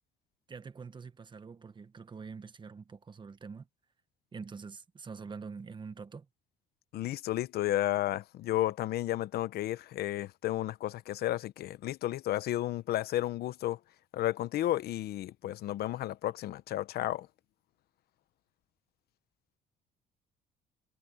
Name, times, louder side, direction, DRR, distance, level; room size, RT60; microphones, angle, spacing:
voice 1, 0.5-3.7 4.3-6.3, right 5 dB, 30° right, 1.4 m, -45 dB
voice 2, 6.9-13.8 14.1-17.3, left 14 dB, 70° left, 0.9 m, -32 dB
cardioid pair, 110°, 17 cm